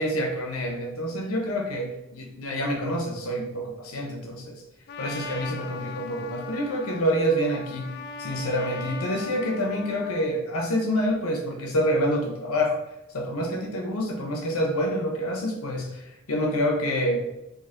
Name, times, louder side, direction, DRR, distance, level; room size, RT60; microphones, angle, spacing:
voice 1, 0.0-4.6 5.0-12.8 13.1-17.2, equal, 70° left, 1 dB, 0.7 m, -27 dB
Trumpet, 4.9-10.3, left 3 dB, 45° left, 0.3 m, -39 dB
4.3 x 2.7 x 2.6 m, 0.95 s
head